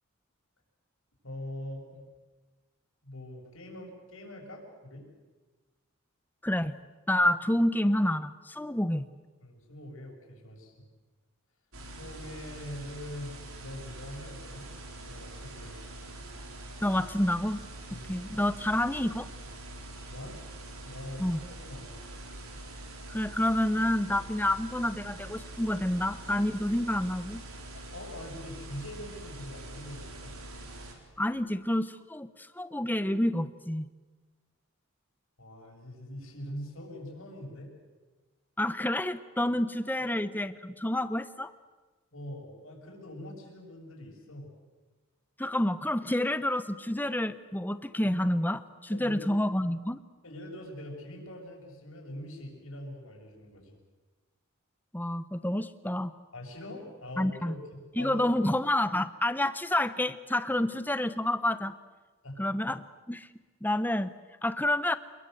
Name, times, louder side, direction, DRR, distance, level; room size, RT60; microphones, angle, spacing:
voice 1, 1.2-2.0 3.0-5.0 9.4-10.9 11.8-13.3 13.6-14.7 15.0-15.8 17.9-18.1 20.1-20.3 20.8-22.0 27.7-30.3 35.4-37.7 39.8-40.0 42.1-44.5 48.9-49.3 50.2-53.8 56.3-58.4 62.2-62.4, left 1 dB, 70° left, 1 dB, 6.8 m, -43 dB
voice 2, 6.4-6.8 7.1-9.0 16.8-17.6 18.1-19.3 21.2-21.4 23.1-27.4 31.2-33.9 38.6-41.5 45.4-50.0 54.9-56.1 57.2-57.6 58.0-61.7 62.4-63.3 63.6-64.1 64.4-64.9, left 1 dB, 10° left, 13 dB, 0.8 m, -28 dB
sound 1, 11.7-30.9, right 1 dB, 80° right, 4.2 m, -44 dB
28.0 x 22.0 x 7.9 m, 1.3 s
head